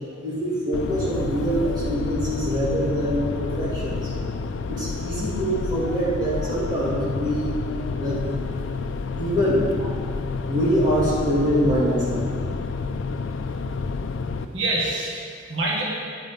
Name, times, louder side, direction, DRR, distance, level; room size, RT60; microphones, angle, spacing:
voice 1, 0.2-4.1 4.7-7.5 8.0-8.5 9.1-9.6 10.5-12.3, equal, 20° right, -9 dB, 2.3 m, -24 dB
sound 1, 0.7-14.5, left 4 dB, 75° left, 0.4 m, -29 dB
voice 2, 14.5-15.8, right 2 dB, 70° right, -4 dB, 1.6 m, -27 dB
9.8 x 9.1 x 3.6 m, 2.1 s
head